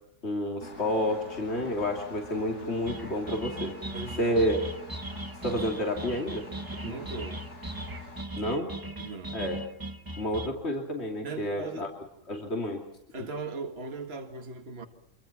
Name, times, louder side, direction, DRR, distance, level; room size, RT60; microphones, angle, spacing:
voice 1, 0.2-3.7 4.2-4.6 5.4-6.4 6.8-6.9 8.4-8.7 9.3-9.6 10.2-11.9 12.3-12.8, equal, 55° left, 3.1 m, -29 dB
Engine, 0.6-8.2, left 2 dB, 85° left, 4.2 m, -46 dB
sound 1, 2.8-10.5, right 2 dB, 15° right, 1.1 m, -39 dB
voice 2, 3.9-4.5 6.8-7.4 9.0-9.4 11.2-11.9 13.1-14.9, right 4 dB, 50° right, 2.1 m, -38 dB
26.0 x 25.5 x 6.0 m
omnidirectional pair, 1.3 m